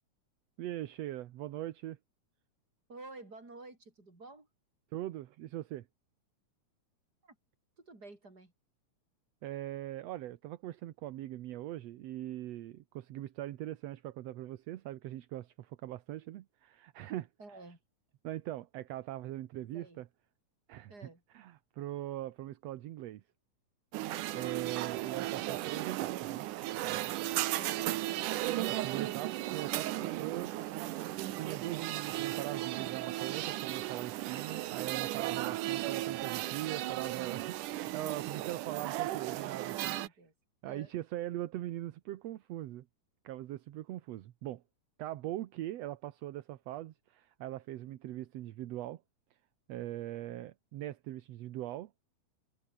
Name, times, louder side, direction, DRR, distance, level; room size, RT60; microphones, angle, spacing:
voice 1, 0.6-2.0 4.9-5.9 9.4-17.3 18.2-20.1 20.7-20.9 21.3-23.2 24.4-26.5 26.8-27.1 28.7-30.6 31.3-40.0 40.6-42.9 43.2-44.6 45.0-49.0 49.7-51.9, right 14 dB, 65° right, 1.8 m, -41 dB
voice 2, 2.9-4.5 7.2-7.4 7.8-8.5 17.4-17.8 19.5-20.0 20.9-21.2 24.3-24.6 27.4-28.3 39.7-40.3 40.6-40.9, right 2 dB, 30° right, 6.3 m, -51 dB
sound 1, 23.9-40.1, right 15 dB, 80° right, 2.5 m, -35 dB
omnidirectional pair, 3.6 m